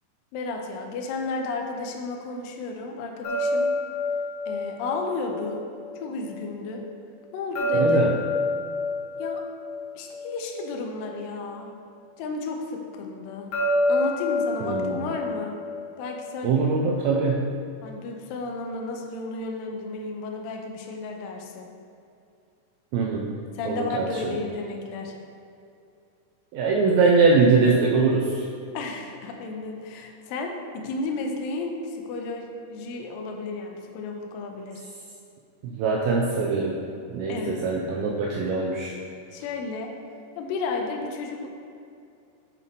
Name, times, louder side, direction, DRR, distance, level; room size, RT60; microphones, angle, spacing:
voice 1, 0.3-3.7 4.5-5.6 6.0-6.8 7.3-8.0 9.2-9.4 10.0-11.7 12.2-13.5 13.9-15.5 16.0-16.5 17.8-21.7 23.6-25.2 28.7-34.8 37.3-37.6 39.3-39.9 40.4-41.5, left 3 dB, 80° left, 2 dB, 2.1 m, -33 dB
sound 1, 3.2-6.3 7.6-11.1 13.5-16.6, left 2 dB, 55° left, 1.9 m, -28 dB
voice 2, 7.7-8.1 14.6-15.1 16.4-17.6 22.9-23.4 23.7-24.4 26.5-28.5 35.6-36.8 37.1-38.9, right 4 dB, 80° right, -1 dB, 2.2 m, -22 dB
7.4 x 4.1 x 5.2 m, 2.5 s
omnidirectional pair, 4.7 m